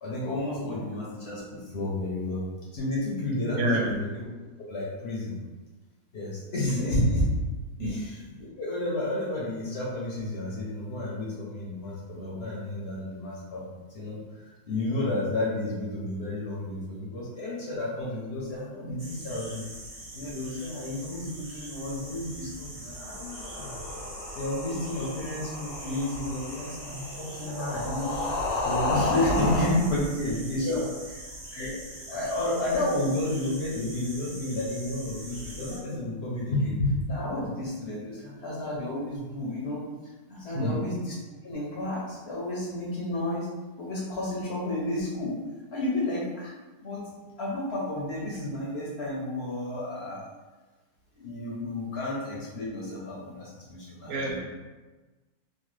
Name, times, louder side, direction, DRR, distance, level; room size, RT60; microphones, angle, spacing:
voice 1, 0.0-2.4 2.7-4.3 4.7-5.3 6.1-7.3 7.8-13.6 13.9-19.6 20.1-23.8 24.4-28.2 28.6-30.8 31.5-39.8 40.3-41.1 41.4-43.5 43.8-45.4 45.7-46.5 46.8-47.1 47.4-50.2 51.2-54.4, left 1 dB, 60° left, -5 dB, 0.7 m, -31 dB
voice 2, 3.6-4.0 6.7-6.8 7.8-7.9 30.6-30.9 40.5-40.8 54.0-54.4, equal, 90° right, -1 dB, 1.2 m, -28 dB
sound 1, 19.0-35.8, right 1 dB, 30° right, 0.5 m, -43 dB
sound 2, 23.1-29.8, left 2 dB, 90° left, 1.2 m, -32 dB
3.1 x 2.2 x 3.1 m, 1.2 s
omnidirectional pair, 1.7 m